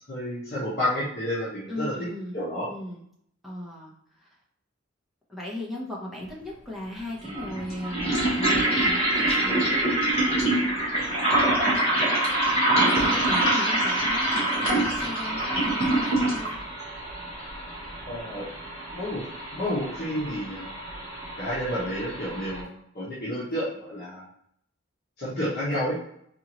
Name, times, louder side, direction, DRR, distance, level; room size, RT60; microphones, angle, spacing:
voice 1, 0.1-1.9 2.3-2.7 18.1-18.4 18.9-19.2 19.5-20.8 21.4-24.3 25.2-26.0, equal, 50° left, -9 dB, 1.1 m, -30 dB
voice 2, 1.7-2.3 2.7-3.0 3.4-4.3 5.3-9.7 12.8-16.6, left 1 dB, ahead, -5 dB, 1.0 m, -37 dB
sound 1, 6.2-6.3 7.2-22.6, right 1 dB, 30° left, 1.3 m, -25 dB
4.5 x 2.5 x 3.0 m, 0.70 s
head